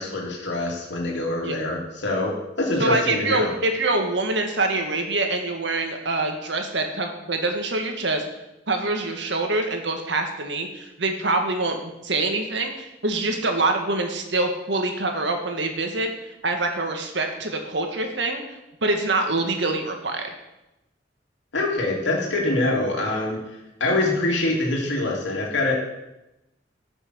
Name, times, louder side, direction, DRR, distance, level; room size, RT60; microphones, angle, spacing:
voice 1, 0.0-3.5 21.5-23.4 23.8-25.7, left 2 dB, 80° left, -2 dB, 2.6 m, -24 dB
voice 2, 2.8-8.2 8.7-16.1 16.4-18.4 18.8-20.3, right 2 dB, 70° right, 4 dB, 1.8 m, -25 dB
13.0 x 6.3 x 6.2 m, 0.93 s
head